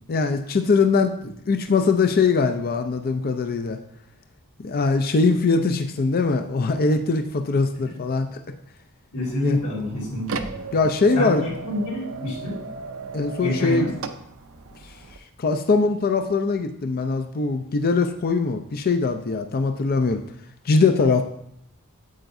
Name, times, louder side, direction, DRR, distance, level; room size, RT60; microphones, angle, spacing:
voice 1, 0.1-3.8 4.6-8.4 9.4-9.6 10.7-11.4 13.1-13.9 15.4-20.2 20.6-21.2, left 4 dB, 45° left, 7 dB, 0.5 m, -21 dB
voice 2, 9.1-10.5 11.1-12.5 13.4-13.9, left 1 dB, 75° left, -6 dB, 3.6 m, -27 dB
sound 1, 9.2-15.2, right 4 dB, 65° right, 0.6 m, -36 dB
8.8 x 7.9 x 2.6 m, 0.73 s
head